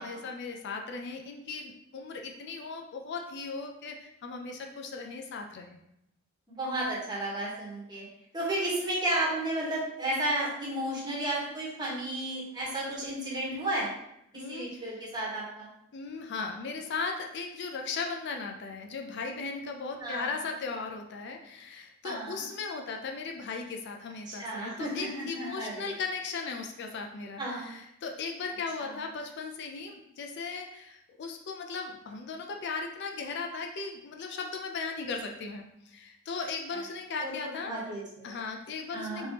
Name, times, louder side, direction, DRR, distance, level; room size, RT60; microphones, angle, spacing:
voice 1, 0.0-5.8 14.3-15.0 15.9-37.7 38.2-39.3, left 4 dB, 55° left, 3 dB, 0.4 m, -37 dB
voice 2, 6.6-8.0 8.3-13.9 14.3-15.7 20.0-20.3 22.0-22.4 24.3-25.9 27.4-27.7 28.8-28.9 37.2-38.3 38.9-39.3, right 1 dB, 20° right, -6 dB, 1.3 m, -33 dB
4.3 x 3.3 x 2.9 m, 0.82 s
head